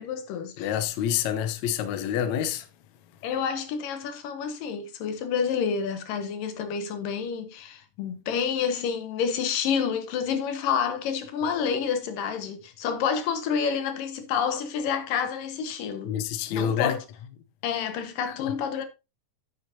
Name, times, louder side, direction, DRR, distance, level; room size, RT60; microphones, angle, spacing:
voice 1, 0.0-0.7 3.2-16.1 16.5-17.0 17.6-18.9, left 7 dB, 85° left, 3.0 m, -29 dB
voice 2, 0.6-2.7 16.0-16.9 18.4-18.5, left 9 dB, 70° left, 2.1 m, -27 dB
9.5 x 9.1 x 2.7 m
omnidirectional pair, 3.8 m